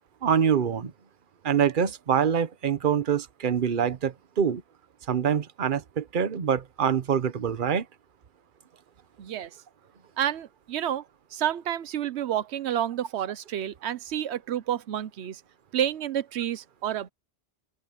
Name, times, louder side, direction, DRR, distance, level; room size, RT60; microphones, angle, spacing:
voice 1, 0.2-0.9 1.4-4.6 5.1-7.8, right 8 dB, 55° right, 1.1 m, -25 dB
voice 2, 9.2-9.6 10.2-11.0 11.3-15.4 15.7-17.1, right 10 dB, 90° right, 1.0 m, -29 dB
open air
omnidirectional pair, 1.1 m